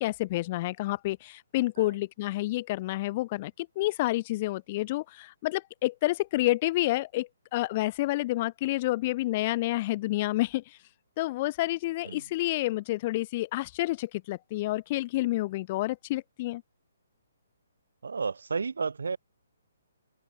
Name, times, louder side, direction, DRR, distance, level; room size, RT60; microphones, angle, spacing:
voice 1, 0.0-10.8 11.2-16.6, left 18 dB, 35° left, 0.5 m, -29 dB
voice 2, 18.0-19.2, right 5 dB, 75° right, 2.1 m, -32 dB
open air
figure-of-eight pair, 140°, 0 cm